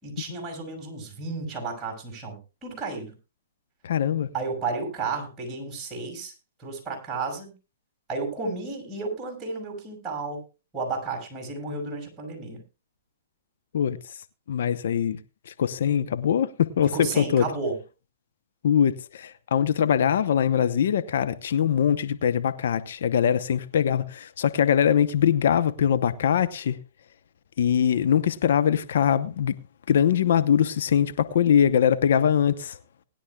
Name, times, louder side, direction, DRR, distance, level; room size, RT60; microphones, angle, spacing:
voice 1, 0.0-3.1 4.3-6.3 6.6-7.5 8.1-10.4 10.7-12.6 16.8-17.8, right 3 dB, 20° right, 6.1 m, -32 dB
voice 2, 3.8-4.3 13.7-14.1 14.5-15.2 15.5-17.5 18.6-26.8 27.6-29.6 29.9-32.8, left 8 dB, 70° left, 0.9 m, -22 dB
20.0 x 11.5 x 2.3 m
hypercardioid pair, 130°, 0 cm